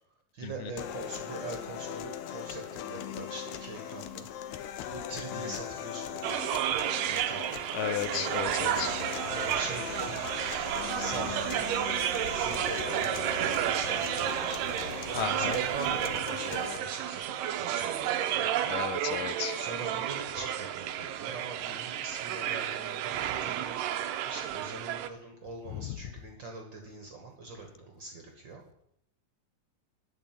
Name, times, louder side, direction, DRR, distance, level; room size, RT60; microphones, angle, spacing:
voice 1, 0.3-4.3 4.5-8.3 9.3-10.3 11.0-11.7 12.3-14.8 15.1-19.2 19.5-28.6, right 3 dB, 50° right, 3 dB, 1.5 m, -43 dB
sound 1, 0.8-16.8, left 10 dB, 75° left, 1.9 m, -40 dB
sound 2, 6.2-25.1, right 11 dB, 90° right, 2.3 m, -32 dB
voice 2, 7.7-8.9 15.1-15.5 18.7-19.6 25.7-26.0, left 12 dB, 90° left, 13 dB, 2.3 m, -34 dB
Water / Drip, 8.3-16.2, equal, 35° left, 1.1 m, -47 dB
10.0 x 6.5 x 9.0 m, 0.77 s
omnidirectional pair, 3.8 m